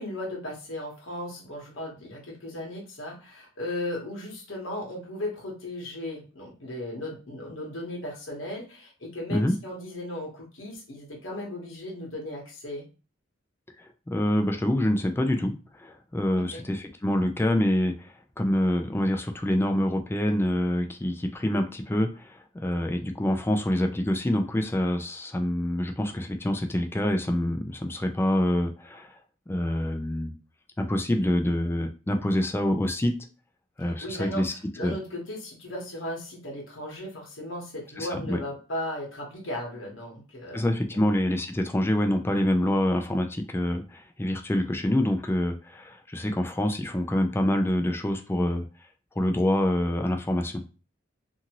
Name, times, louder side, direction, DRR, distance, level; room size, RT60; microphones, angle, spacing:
voice 1, 0.0-12.9 16.4-16.6 33.8-34.4 34.8-41.0, left 1 dB, 80° left, -1 dB, 1.0 m, -36 dB
voice 2, 13.8-29.1 29.5-30.3 30.8-33.1 33.8-34.5 34.8-34.9 38.0-38.4 40.5-48.7 49.2-50.6, left 1 dB, 10° left, 5 dB, 0.4 m, -26 dB
2.6 x 2.6 x 2.9 m, 0.34 s
head